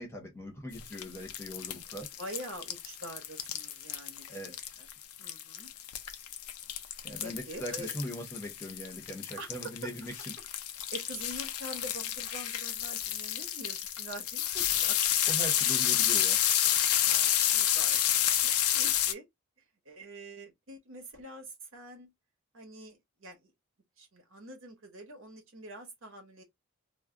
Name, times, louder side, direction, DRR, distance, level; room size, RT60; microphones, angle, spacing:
voice 1, 0.0-2.1 4.3-4.8 7.0-10.3 15.3-16.4, equal, 10° left, 0.8 m, -41 dB
sound 1, 0.7-19.1, left 11 dB, 90° left, 0.5 m, -30 dB
voice 2, 1.9-4.9 5.2-5.7 7.2-8.0 9.4-9.5 10.9-15.0 17.0-18.1 18.4-19.2 19.8-22.1 22.5-23.5 24.0-26.4, right 1 dB, 65° right, 1.0 m, -45 dB
2.3 x 2.1 x 3.5 m
head